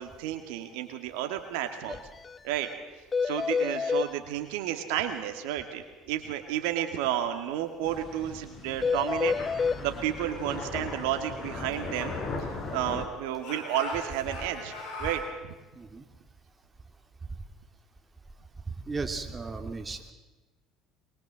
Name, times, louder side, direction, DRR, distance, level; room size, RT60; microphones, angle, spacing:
voice 1, 0.0-2.0 2.4-2.7 3.2-12.2 12.7-14.7 15.0-15.5, right 11 dB, 75° right, 6 dB, 2.3 m, -32 dB
sound 1, 1.9-2.0 2.2-2.4 2.6-2.7 3.1-4.1 8.8-9.8, left 5 dB, 30° left, 0.7 m, -28 dB
sound 2, 7.8-13.1, left 3 dB, 45° left, 4.3 m, -38 dB
Speech / Shout, 11.4-12.9 13.4-15.3, left 1 dB, 65° left, 8.0 m, -41 dB
voice 2, 18.9-20.1, right 3 dB, 25° right, 5 dB, 3.0 m, -35 dB
23.0 x 22.5 x 7.7 m, 1.2 s
hypercardioid pair, 65°, 0 cm